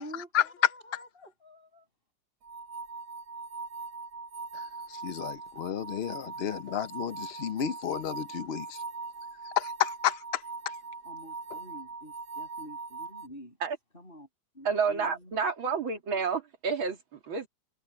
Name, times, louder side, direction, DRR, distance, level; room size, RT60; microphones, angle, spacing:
voice 1, 0.0-1.9 11.0-13.6 13.9-14.3 14.5-15.3, equal, 25° left, 8.1 m, -48 dB
sound 1, 2.4-13.3, right 4 dB, 50° right, 1.2 m, -41 dB
voice 2, 5.0-8.8 9.6-10.4, left 10 dB, 70° left, 0.6 m, -31 dB
voice 3, 14.6-17.5, right 5 dB, 80° right, 3.5 m, -30 dB
omnidirectional pair, 2.2 m